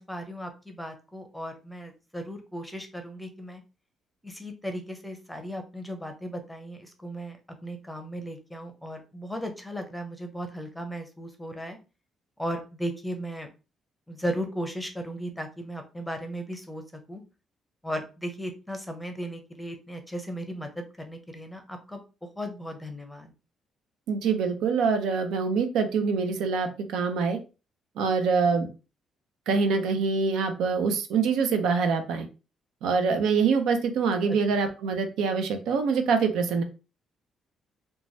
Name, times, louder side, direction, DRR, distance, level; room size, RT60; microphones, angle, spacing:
voice 1, 0.0-3.6 4.2-11.8 12.4-13.5 14.1-16.8 17.1-17.2 17.8-22.0 22.4-23.3 34.3-34.4, equal, 5° left, 5 dB, 0.7 m, -36 dB
voice 2, 24.1-27.4 28.0-28.7 29.5-32.3 32.8-36.6, right 5 dB, 85° right, 7 dB, 0.5 m, -25 dB
3.0 x 2.2 x 2.6 m, 0.31 s
cardioid pair, 90°, 0 cm